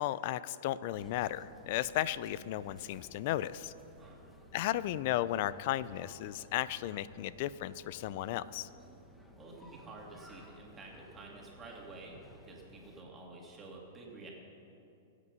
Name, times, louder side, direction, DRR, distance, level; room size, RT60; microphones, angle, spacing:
voice 1, 0.0-3.7 4.5-8.7, left 13 dB, 50° left, 17 dB, 0.5 m, -34 dB
sound 1, 0.9-13.0, equal, 5° left, 1.2 m, -57 dB
voice 2, 9.4-14.3, right 2 dB, 15° right, -2 dB, 2.7 m, -50 dB
21.5 x 8.4 x 5.5 m, 2.7 s
hypercardioid pair, 140°, 0 cm